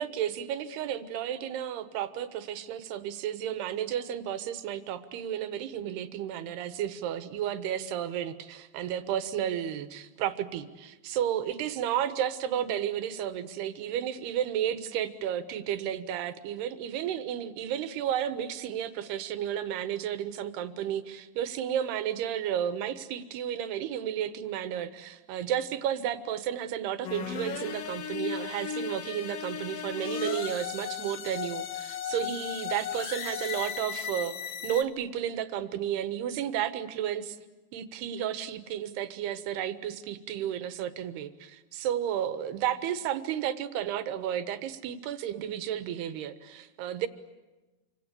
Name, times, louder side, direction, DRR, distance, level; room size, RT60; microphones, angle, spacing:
voice 1, 0.0-34.4 34.6-37.4 37.7-47.1, right 10 dB, 80° right, 11 dB, 3.4 m, -32 dB
sound 1, 27.0-34.8, left 8 dB, 80° left, 1.3 m, -36 dB
27.5 x 26.0 x 8.4 m, 1.1 s
omnidirectional pair, 4.7 m